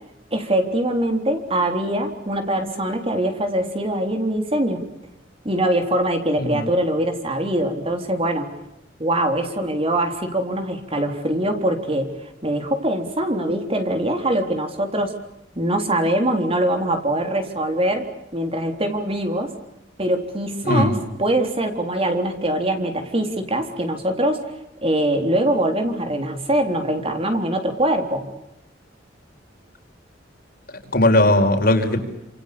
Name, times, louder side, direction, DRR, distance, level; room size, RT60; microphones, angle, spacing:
voice 1, 0.3-4.9 5.4-8.5 9.0-12.1 12.4-15.2 15.6-19.5 20.0-24.5 24.8-28.3, right 1 dB, 30° right, 5 dB, 3.7 m, -23 dB
voice 2, 30.9-32.0, left 1 dB, 55° left, 5 dB, 5.0 m, -17 dB
29.5 x 27.0 x 6.9 m, 0.87 s
head